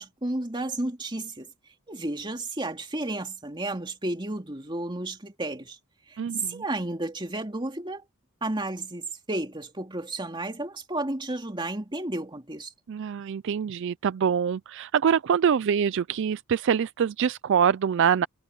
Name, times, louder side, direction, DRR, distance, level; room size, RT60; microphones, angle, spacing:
voice 1, 0.0-1.5 1.9-5.8 6.1-8.1 8.4-12.7, right 2 dB, 20° right, 2.7 m, -32 dB
voice 2, 6.2-6.6 12.9-18.3, right 7 dB, 55° right, 0.3 m, -24 dB
head